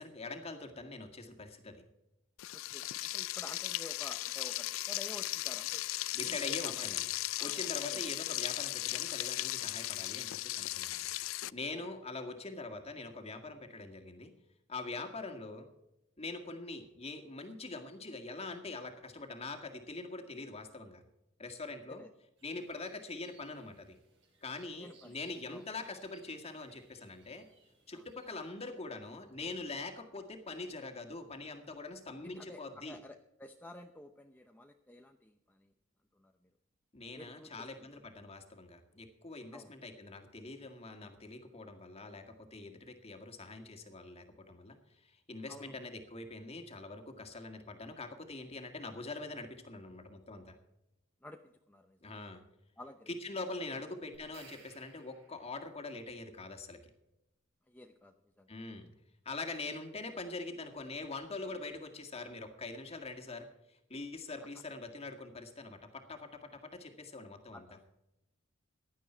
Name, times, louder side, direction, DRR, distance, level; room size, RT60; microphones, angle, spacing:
voice 1, 0.0-1.8 6.1-7.1 7.4-11.1 11.5-14.3 14.7-15.7 16.2-21.0 21.4-22.0 22.4-24.0 24.4-27.5 27.9-33.0 36.9-44.8 45.0-50.6 52.0-52.4 53.2-56.8 58.5-58.9 59.3-67.7, left 3 dB, 30° left, 6 dB, 1.9 m, -43 dB
Frying (food), 2.4-11.5, left 17 dB, 80° left, 0.4 m, -37 dB
voice 2, 2.5-5.9 6.2-6.4 6.6-6.9 7.4-7.5 7.9-8.0 11.7-11.9 21.9-22.1 22.7-22.9 24.8-25.2 25.5-25.6 27.9-28.1 30.0-30.1 32.2-35.7 36.1-36.5 37.1-38.0 39.5-39.7 45.5-45.8 51.2-52.1 52.8-53.2 53.7-53.8 57.7-58.5 67.5-67.8, left 1 dB, 10° left, 5 dB, 0.7 m, -52 dB
sound 1, 22.4-28.7, right 5 dB, 65° right, 5.2 m, -67 dB
sound 2, 54.1-55.7, right 5 dB, 85° right, 4.5 m, -59 dB
16.0 x 11.5 x 4.5 m, 0.91 s
head